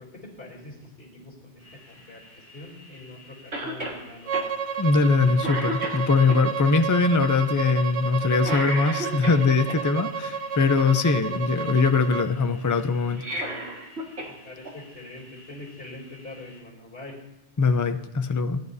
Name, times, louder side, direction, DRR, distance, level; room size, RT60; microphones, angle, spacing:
voice 1, 0.0-4.4 14.2-17.2, left 2 dB, 55° left, -2 dB, 3.4 m, -44 dB
sound 1, 1.6-16.6, left 2 dB, 30° right, 3.4 m, -53 dB
Cough, 3.5-4.0 4.3-4.5 5.0-5.1 5.4-6.4 8.4-9.8 13.0-14.3 14.6-14.7 15.9-16.0, right 1 dB, 65° right, 2.2 m, -32 dB
Bowed string instrument, 4.3-12.3, right 6 dB, 85° right, 0.9 m, -31 dB
voice 2, 4.8-13.3 17.6-18.6, left 4 dB, 30° left, 9 dB, 0.3 m, -22 dB
19.5 x 10.5 x 2.7 m, 0.99 s
omnidirectional pair, 1.2 m